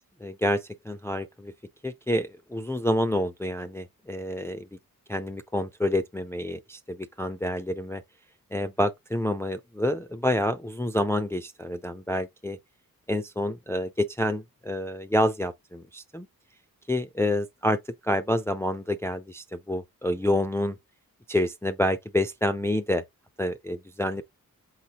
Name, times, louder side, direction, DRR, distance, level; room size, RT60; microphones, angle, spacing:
voice 1, 0.2-1.5 1.8-4.7 5.1-8.0 8.5-12.6 13.1-16.3 16.9-20.8 21.3-23.0 23.4-24.2, left 1 dB, 5° left, 0.4 m, -28 dB
4.4 x 4.1 x 2.9 m
wide cardioid pair, 85°, 35 cm